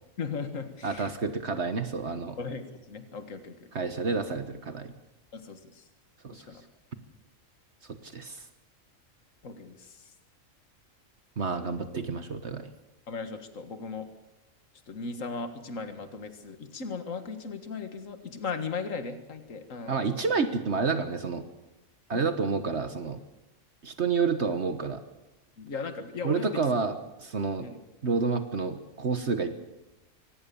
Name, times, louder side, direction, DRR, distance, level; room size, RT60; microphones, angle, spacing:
voice 1, 0.2-1.1 2.4-3.7 5.3-5.9 6.3-6.6 9.4-10.1 13.1-14.1 14.9-20.2 22.1-22.3 25.6-26.6 27.6-27.8, left 4 dB, 70° left, 8 dB, 2.1 m, -37 dB
voice 2, 0.8-2.4 3.7-4.9 6.2-6.5 7.9-8.5 11.4-12.7 19.9-21.4 22.1-23.2 23.8-25.0 26.2-27.7 28.0-29.6, right 4 dB, 55° right, 9 dB, 1.5 m, -29 dB
24.0 x 19.0 x 7.0 m, 0.96 s
omnidirectional pair, 1.4 m